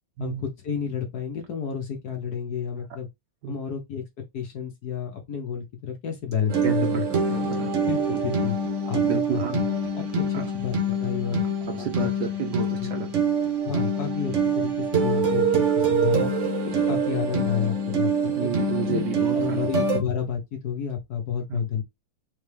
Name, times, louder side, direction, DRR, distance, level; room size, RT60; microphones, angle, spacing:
voice 1, 0.2-3.1 3.5-4.0 4.3-7.1 7.8-8.6 8.9-9.6 9.9-11.4 11.8-12.1 12.8-12.9 13.6-16.3 16.6-18.5 18.9-21.8, left 7 dB, 55° left, 1.3 m, -30 dB
sound 1, 6.5-20.0, right 3 dB, 50° right, 0.9 m, -25 dB
voice 2, 6.6-7.0 7.3-7.7 9.0-9.5 10.3-10.4 11.7-13.2 18.4-19.7 21.5-21.6, right 9 dB, 70° right, 1.0 m, -31 dB
3.8 x 3.4 x 3.3 m
omnidirectional pair, 2.3 m